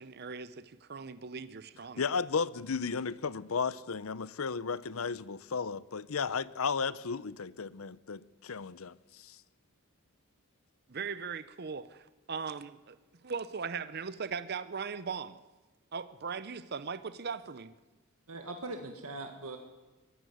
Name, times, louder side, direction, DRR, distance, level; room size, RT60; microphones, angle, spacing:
voice 1, 0.0-2.0 10.9-13.0 13.2-15.4 15.9-17.7, right 5 dB, 45° right, 0.7 m, -39 dB
voice 2, 2.0-9.4, left 5 dB, 75° left, 0.7 m, -34 dB
voice 3, 18.3-19.6, right 2 dB, 90° right, 1.8 m, -41 dB
22.0 x 15.5 x 9.4 m
head